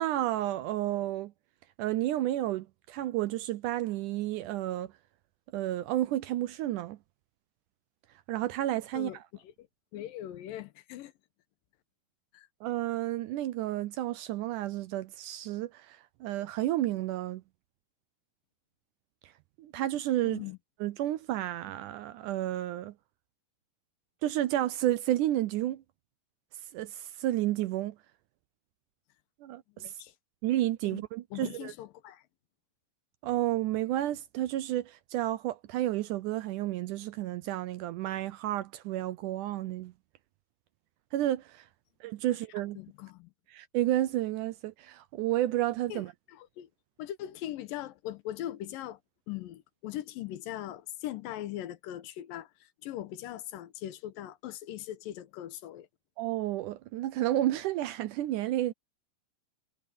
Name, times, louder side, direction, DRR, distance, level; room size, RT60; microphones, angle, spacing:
voice 1, 0.0-1.3 1.8-4.9 5.5-7.0 8.3-9.2 12.6-17.4 19.2-19.3 19.6-20.4 20.8-22.9 24.2-25.8 26.7-28.0 29.4-29.9 30.4-31.7 33.2-39.9 41.1-41.7 42.0-42.8 43.5-46.1 56.2-58.7, right 14 dB, 80° right, 1.9 m, -31 dB
voice 2, 8.9-9.7 9.9-11.1 12.3-12.5 20.2-20.6 29.7-30.1 30.8-31.0 31.3-32.2 42.3-42.4 42.8-43.3 45.9-46.7 47.0-49.0 49.3-55.9, left 13 dB, 75° left, 2.6 m, -40 dB
omnidirectional pair, 4.1 m